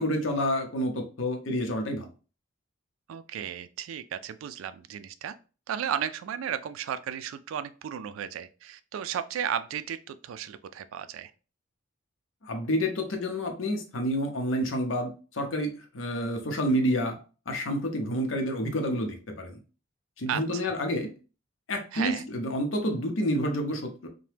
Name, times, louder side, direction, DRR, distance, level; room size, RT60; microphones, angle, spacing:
voice 1, 0.0-2.1 12.5-17.2 17.5-19.6 20.2-21.1 21.7-24.1, equal, 70° left, 4 dB, 0.7 m, -29 dB
voice 2, 3.1-5.3 5.7-11.3 20.3-20.7 21.9-22.3, right 9 dB, 85° right, 12 dB, 0.3 m, -34 dB
2.8 x 2.1 x 3.2 m, 0.35 s
head